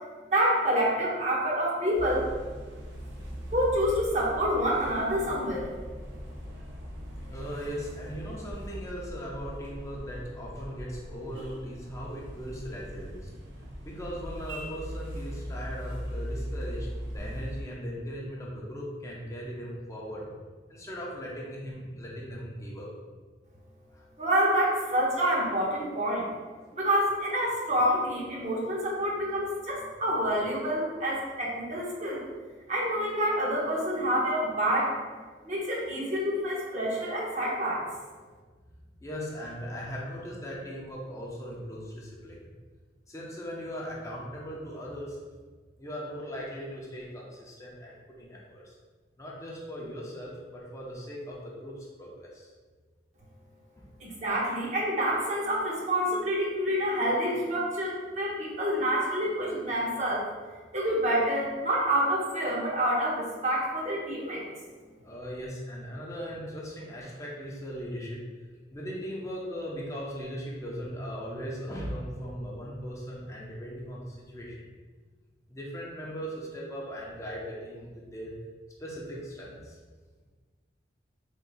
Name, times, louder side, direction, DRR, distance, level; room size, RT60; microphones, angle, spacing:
voice 1, 0.3-2.2 3.5-5.7 24.2-26.3 26.7-32.2 32.7-35.2 35.4-37.9 54.0-60.3 60.7-64.4, equal, 40° right, -4 dB, 0.9 m, -27 dB
sound 1, 1.9-17.6, equal, 85° right, 0.7 m, -40 dB
voice 2, 7.3-13.2 13.8-20.3 20.7-22.9 23.9-24.1 39.0-42.4 43.1-45.2 45.8-48.7 49.2-52.5 53.7-53.8 65.0-68.2 68.7-74.7 75.5-78.3 78.8-79.8, equal, 20° left, -4 dB, 0.6 m, -39 dB
3.6 x 2.6 x 4.0 m, 1.4 s
head